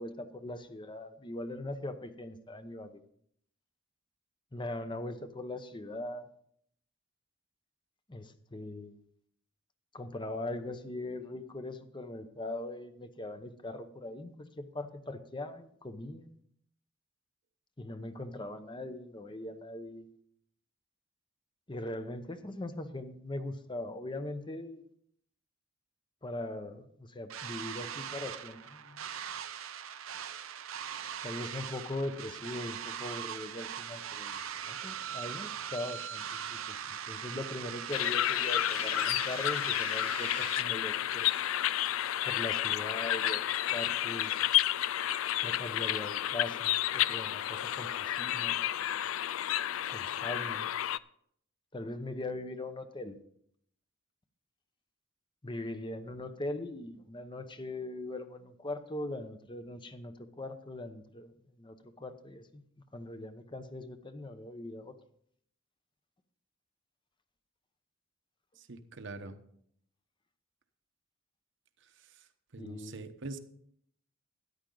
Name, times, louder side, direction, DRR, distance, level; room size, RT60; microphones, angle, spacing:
voice 1, 0.0-3.0 4.5-6.3 8.1-9.0 9.9-16.3 17.8-20.1 21.7-24.8 26.2-29.0 31.2-41.3 42.2-43.4 43.7-44.3 45.4-48.6 49.9-50.7 51.7-53.2 55.4-62.6 62.9-64.9 72.6-73.0, left 1 dB, 25° left, 9 dB, 0.9 m, -40 dB
sound 1, 27.3-40.6, right 8 dB, 80° right, 0.8 m, -41 dB
sound 2, 37.9-51.0, left 12 dB, 75° left, 0.3 m, -31 dB
voice 2, 68.6-69.4 72.0-72.2 72.5-73.4, right 3 dB, 65° right, 8 dB, 1.1 m, -44 dB
13.5 x 10.5 x 3.9 m, 0.67 s
head